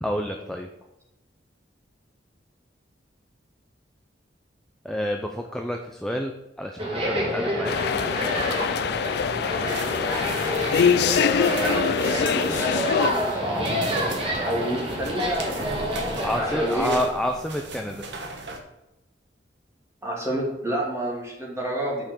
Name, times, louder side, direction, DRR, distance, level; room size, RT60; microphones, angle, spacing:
voice 1, 0.0-0.7 4.8-6.3 6.6-7.8 16.2-18.1, equal, 5° left, 3 dB, 0.5 m, -28 dB
sound 1, 6.8-17.0, equal, 30° right, 2.3 m, -28 dB
sound 2, 7.6-13.1, left 7 dB, 60° left, 0.3 m, -24 dB
sound 3, 9.7-18.6, right 2 dB, 70° right, 1.3 m, -39 dB
voice 2, 11.2-15.8 16.3-16.9 20.0-22.0, right 1 dB, 15° right, -3 dB, 2.5 m, -29 dB
6.8 x 5.9 x 6.3 m, 0.96 s
head